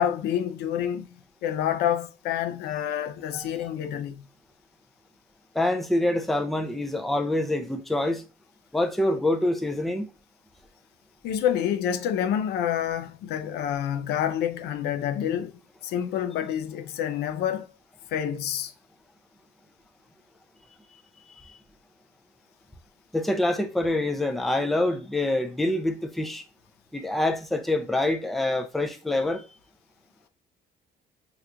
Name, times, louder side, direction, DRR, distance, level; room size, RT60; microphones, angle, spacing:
voice 1, 0.0-4.3 11.2-17.7 18.1-18.7, left 9 dB, 75° left, 0.4 m, -28 dB
voice 2, 5.5-8.2 8.7-10.1 21.4-21.5 23.1-26.4 26.9-29.4, left 1 dB, ahead, 0.4 m, -26 dB
3.0 x 2.4 x 3.3 m
cardioid pair, 110°, 17 cm